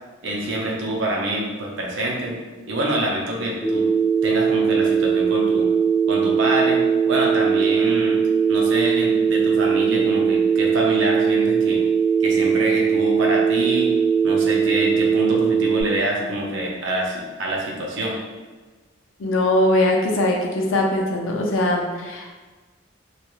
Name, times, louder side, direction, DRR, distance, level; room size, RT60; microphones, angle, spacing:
voice 1, 0.2-2.4 2.7-3.9 4.2-5.7 6.1-6.8 7.1-8.2 8.5-11.8 12.2-13.9 14.2-18.2, right 1 dB, 70° right, -2 dB, 0.6 m, -26 dB
Telephone, 3.6-15.8, right 6 dB, 5° left, 0.5 m, -20 dB
voice 2, 19.2-22.3, left 1 dB, 80° left, 0 dB, 0.5 m, -21 dB
2.3 x 2.3 x 2.9 m, 1.3 s
head